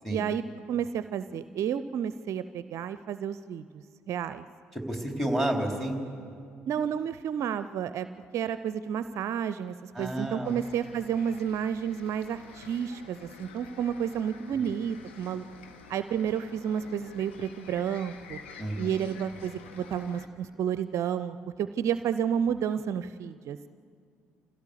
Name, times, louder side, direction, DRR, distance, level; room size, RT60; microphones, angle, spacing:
voice 1, 0.1-0.4 0.7-4.5 6.7-8.1 8.3-15.4 15.9-18.4 18.8-23.7, right 8 dB, 55° right, 13 dB, 0.5 m, -31 dB
voice 2, 4.7-6.0 9.9-10.5 14.5-14.6 18.6-19.1, right 1 dB, ahead, 1 dB, 3.8 m, -31 dB
sound 1, 10.4-20.3, left 5 dB, 80° left, 1.3 m, -49 dB
27.5 x 16.5 x 6.7 m, 2.3 s
figure-of-eight pair, 50°, 6 cm